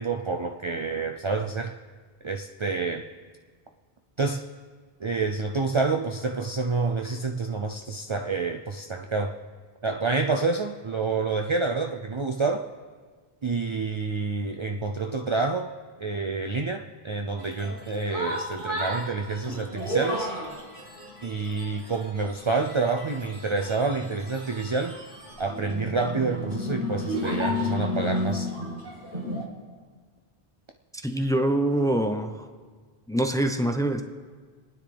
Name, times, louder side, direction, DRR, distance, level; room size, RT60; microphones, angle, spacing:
voice 1, 0.0-1.8 2.2-3.1 4.2-4.4 5.0-9.3 9.8-12.7 13.4-15.7 16.0-20.3 21.2-25.0 25.4-28.5, right 4 dB, 40° right, 4 dB, 0.5 m, -28 dB
sound 1, 17.4-29.5, left 1 dB, 55° right, 2.2 m, -33 dB
voice 2, 31.0-32.4 33.1-34.0, right 1 dB, 5° left, 6 dB, 0.7 m, -24 dB
29.0 x 9.8 x 3.4 m, 1.5 s
omnidirectional pair, 1.0 m